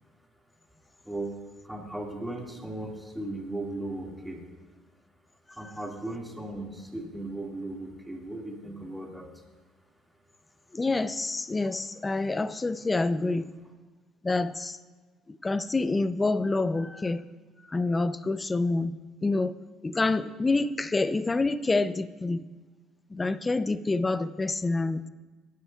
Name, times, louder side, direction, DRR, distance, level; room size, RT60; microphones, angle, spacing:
voice 1, 1.6-4.4 5.6-9.3, right 2 dB, 5° right, 0 dB, 1.9 m, -37 dB
voice 2, 10.7-13.5 14.2-14.8 15.3-17.2 17.7-19.5 19.8-22.4 23.1-25.0, left 3 dB, 20° left, 14 dB, 0.5 m, -27 dB
24.5 x 9.5 x 2.3 m, 1.3 s
cardioid pair, 115°, 0 cm